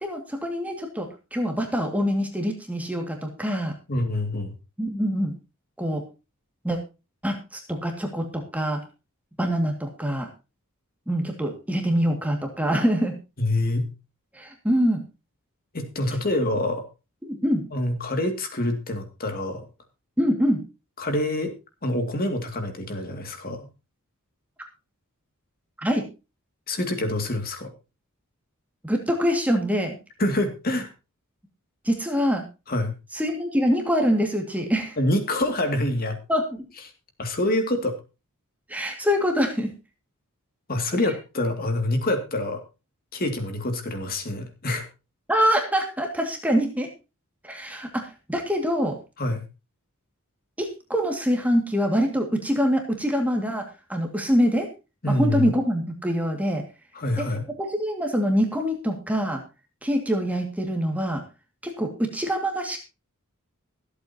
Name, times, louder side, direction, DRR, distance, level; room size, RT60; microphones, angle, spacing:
voice 1, 0.0-3.7 4.8-5.3 5.8-6.0 6.6-6.8 7.2-8.8 9.4-10.3 11.1-13.2 14.3-15.0 17.3-17.7 20.2-20.6 25.8-26.1 28.8-30.0 31.8-32.4 33.1-35.0 36.3-36.4 38.7-39.7 45.3-46.9 47.4-49.0 50.6-54.7 55.1-56.6 57.2-57.3 57.6-59.4 59.8-61.2 61.6-62.8, equal, 5° right, 2 dB, 2.1 m, -24 dB
voice 2, 3.9-4.6 13.4-13.9 15.7-16.8 17.7-19.6 21.0-21.5 21.8-23.7 26.7-27.7 30.2-30.9 32.7-32.9 35.0-36.2 37.2-38.0 40.7-42.6 43.1-44.9 49.2-49.5 55.0-55.6 56.9-57.5, left 1 dB, 40° left, 6 dB, 2.4 m, -26 dB
24.5 x 8.2 x 2.9 m, 0.29 s
head